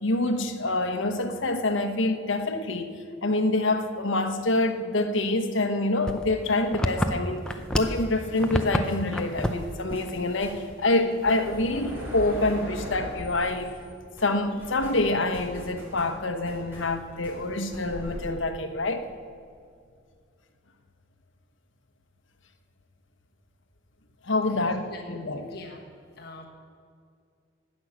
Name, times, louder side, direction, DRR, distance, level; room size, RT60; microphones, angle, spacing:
voice 1, 0.0-2.9 3.2-7.5 7.7-13.8 14.2-19.1 24.2-25.5, left 2 dB, 75° left, 7 dB, 1.1 m, -26 dB
sound 1, 6.1-8.0 8.3-8.8 9.1-9.6 9.9-10.1 10.5-10.6 11.2-11.7, equal, 5° left, 0.6 m, -27 dB
sound 2, 7.5-13.9 14.2-18.3, equal, 10° right, 4.0 m, -42 dB
voice 2, 25.5-25.8 26.2-26.5, left 3 dB, 50° left, 0 dB, 1.4 m, -43 dB
17.5 x 6.4 x 7.4 m, 2.2 s
head